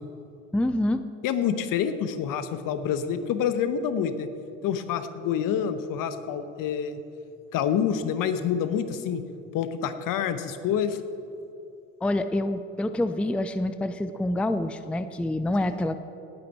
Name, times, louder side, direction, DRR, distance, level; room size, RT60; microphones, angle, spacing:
voice 1, 0.5-1.0 12.0-16.0, left 1 dB, 5° left, 11 dB, 0.5 m, -26 dB
voice 2, 1.2-4.3 4.6-6.9 7.5-9.2 9.5-11.0, left 8 dB, 55° left, 10 dB, 1.2 m, -27 dB
18.5 x 8.7 x 4.6 m, 2.8 s
hypercardioid pair, 70°, 38 cm